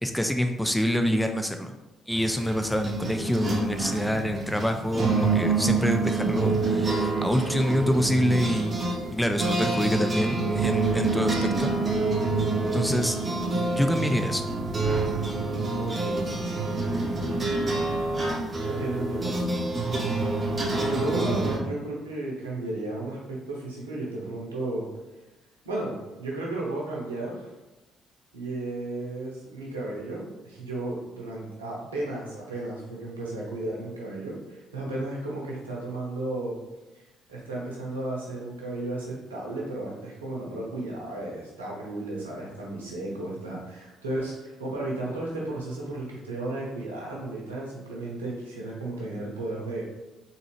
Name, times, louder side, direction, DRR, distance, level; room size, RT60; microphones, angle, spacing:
voice 1, 0.0-1.7 2.1-8.8 9.1-11.7 12.7-13.2 13.7-14.4, equal, 5° left, 6 dB, 0.3 m, -26 dB
sound 1, 2.1-21.6, right 3 dB, 35° right, 0.8 m, -27 dB
voice 2, 15.8-16.9 18.7-19.4 20.8-24.9 25.6-27.5 28.3-36.6 36.9-37.0 37.3-49.8, right 2 dB, 80° right, -4 dB, 0.8 m, -34 dB
3.7 x 2.8 x 3.0 m, 1.1 s
figure-of-eight pair, 45°, 0 cm